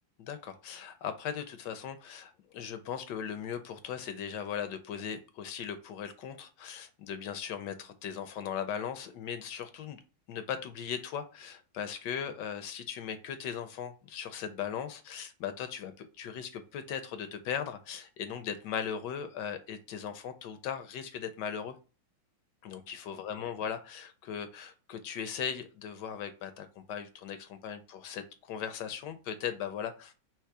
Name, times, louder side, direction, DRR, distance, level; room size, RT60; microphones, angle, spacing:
voice 1, 0.2-10.0 10.3-21.7 22.6-30.1, left 8 dB, 75° left, 9 dB, 1.1 m, -38 dB
3.4 x 3.0 x 4.6 m, 0.34 s
omnidirectional pair, 2.1 m